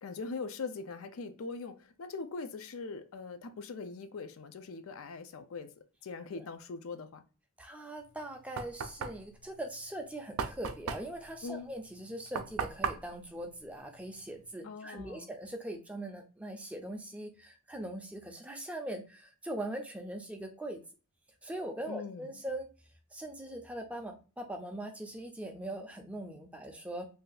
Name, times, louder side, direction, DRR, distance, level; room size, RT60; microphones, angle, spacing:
voice 1, 0.0-5.7 6.0-7.2 11.4-11.7 14.6-15.3 21.9-22.3, left 4 dB, 80° left, 0.4 m, -41 dB
voice 2, 7.6-20.8 21.4-22.7 23.1-27.1, right 1 dB, 5° right, 0.4 m, -41 dB
Knock, 8.0-14.5, right 6 dB, 85° right, 0.4 m, -39 dB
2.6 x 2.3 x 3.8 m
head